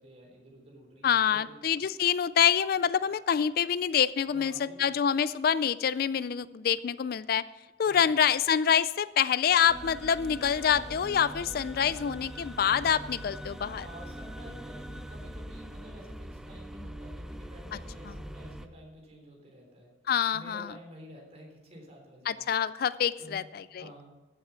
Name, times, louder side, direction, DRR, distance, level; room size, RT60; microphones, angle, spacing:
voice 1, 0.0-1.6 4.2-5.0 7.8-8.2 13.8-19.9 20.3-22.5 23.2-23.5 23.7-24.1, right 1 dB, 35° right, 0 dB, 3.5 m, -50 dB
voice 2, 1.0-7.4 7.8-13.9 20.1-20.7 22.3-23.9, left 8 dB, 55° left, 17 dB, 0.4 m, -26 dB
sound 1, 9.7-18.7, equal, 5° right, 0.5 m, -42 dB
14.5 x 7.7 x 5.7 m, 1.2 s
head